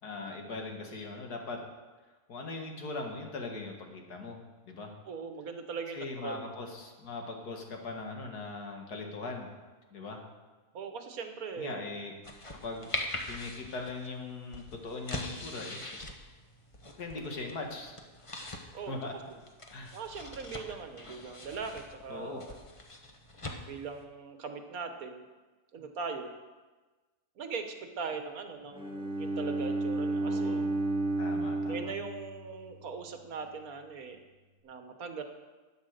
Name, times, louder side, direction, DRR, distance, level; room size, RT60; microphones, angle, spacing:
voice 1, 0.0-1.6 2.3-4.4 4.6-4.9 5.9-9.5 9.9-10.2 11.6-12.1 12.6-13.0 13.3-16.0 17.0-17.9 18.9-19.1 19.7-20.0 22.1-22.5 30.2-30.7 31.2-31.9, left 3 dB, 80° left, 2 dB, 2.3 m, -40 dB
voice 2, 5.1-6.5 10.7-11.9 18.7-19.0 19.9-22.6 23.7-25.3 25.7-26.3 27.4-30.6 31.7-34.2 34.6-35.2, right 5 dB, 65° right, 7 dB, 1.6 m, -40 dB
sound 1, 12.2-24.0, left 2 dB, 25° left, 1.0 m, -43 dB
Bowed string instrument, 28.7-32.8, right 2 dB, 5° right, 1.7 m, -32 dB
12.0 x 9.4 x 6.6 m, 1.3 s
omnidirectional pair, 1.7 m